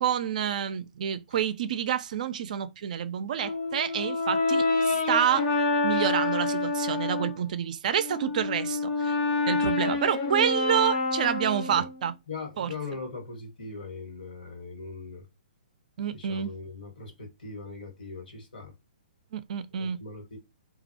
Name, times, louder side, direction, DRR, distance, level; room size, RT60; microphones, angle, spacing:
voice 1, 0.0-5.5 5.8-9.2 9.5-12.1 12.6-12.7 16.0-16.5 19.3-20.0, right 9 dB, 55° right, 0.3 m, -28 dB
Brass instrument, 3.4-7.4 7.9-12.0, left 3 dB, 35° left, 0.5 m, -27 dB
voice 2, 12.3-15.2 16.1-18.7 19.7-20.4, left 4 dB, 80° left, 1.3 m, -40 dB
2.3 x 2.1 x 2.6 m
hypercardioid pair, 155°, 5 cm